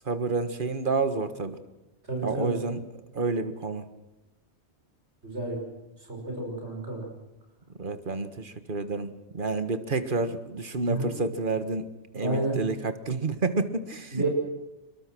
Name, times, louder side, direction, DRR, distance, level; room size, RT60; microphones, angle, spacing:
voice 1, 0.0-1.6 2.2-2.8 3.1-3.9 7.8-11.9 12.1-14.3, right 3 dB, 50° right, 10 dB, 1.7 m, -29 dB
voice 2, 2.1-2.6 5.2-5.6 6.1-7.1 10.8-11.1 12.2-12.6 14.1-14.3, right 2 dB, 75° right, 0 dB, 6.2 m, -30 dB
25.0 x 22.0 x 6.2 m, 1.0 s
omnidirectional pair, 1.2 m